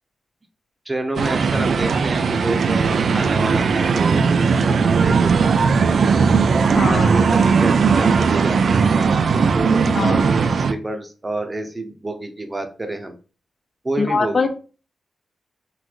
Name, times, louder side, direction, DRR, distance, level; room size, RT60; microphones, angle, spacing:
voice 1, 0.9-4.4 4.7-5.5 6.8-8.8 9.5-13.2 13.8-14.5, right 2 dB, 20° right, 6 dB, 0.8 m, -28 dB
sound 1, 1.2-10.7, right 5 dB, 65° right, 0.4 m, -18 dB
voice 2, 6.7-7.1 9.9-10.2 14.0-14.5, left 3 dB, 50° left, 8 dB, 0.7 m, -21 dB
3.9 x 2.6 x 4.6 m, 0.36 s
wide cardioid pair, 115°, 0 cm